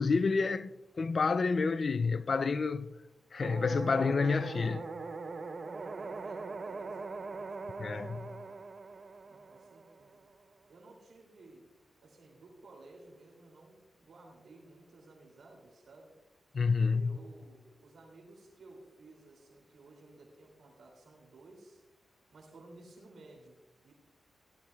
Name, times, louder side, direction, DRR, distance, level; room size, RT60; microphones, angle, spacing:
voice 1, 0.0-2.9 3.3-4.8 7.8-8.3 16.5-17.2, left 4 dB, 50° left, 0.3 m, -29 dB
sound 1, 3.4-10.4, right 3 dB, 45° right, 0.7 m, -42 dB
voice 2, 5.8-8.6 9.3-10.3 10.7-11.7 12.0-16.1 16.9-21.8 22.3-23.9, right 2 dB, 80° right, 2.6 m, -56 dB
16.5 x 12.5 x 2.3 m
wide cardioid pair, 95°, 0 cm